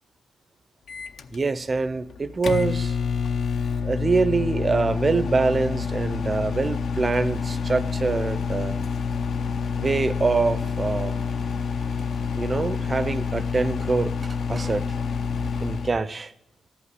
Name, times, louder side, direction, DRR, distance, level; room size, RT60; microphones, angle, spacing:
Microwave oven, 0.9-16.0, left 5 dB, 60° left, 0.6 m, -28 dB
voice 1, 1.3-3.0 3.8-8.8 9.8-11.2 12.4-14.1 14.5-14.9 15.6-16.3, right 3 dB, 30° right, 0.5 m, -24 dB
13.5 x 5.5 x 9.6 m
cardioid pair, 120°, 0 cm